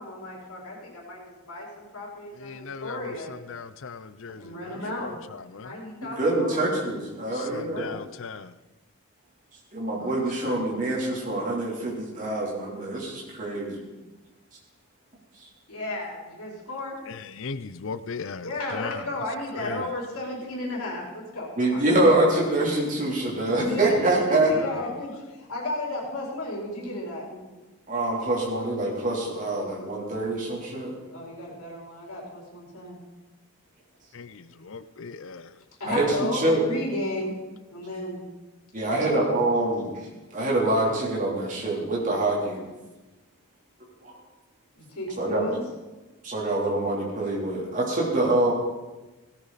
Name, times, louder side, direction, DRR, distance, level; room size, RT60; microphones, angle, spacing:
voice 1, 0.0-3.3 4.4-5.1 5.5-6.7 7.3-7.4 7.7-7.9 15.7-17.0 18.4-21.8 23.5-24.0 24.4-27.3 31.1-33.0 35.8-37.3 37.7-38.2 38.8-39.2 44.7-45.6, left 1 dB, 75° left, -3 dB, 4.5 m, -34 dB
voice 2, 2.4-4.6 4.9-5.7 7.4-8.5 10.0-10.1 10.4-10.6 17.1-19.0 19.6-19.8 24.6-24.9 34.1-35.5, left 5 dB, 60° left, 14 dB, 0.6 m, -38 dB
voice 3, 4.8-5.1 6.0-7.8 9.7-13.8 21.6-24.5 26.9-27.0 27.9-30.9 35.9-36.6 38.7-40.1 40.3-42.6 44.0-44.2 45.2-45.5 46.2-48.5, right 2 dB, 35° right, -3 dB, 3.4 m, -25 dB
17.0 x 14.0 x 4.1 m, 1.1 s
head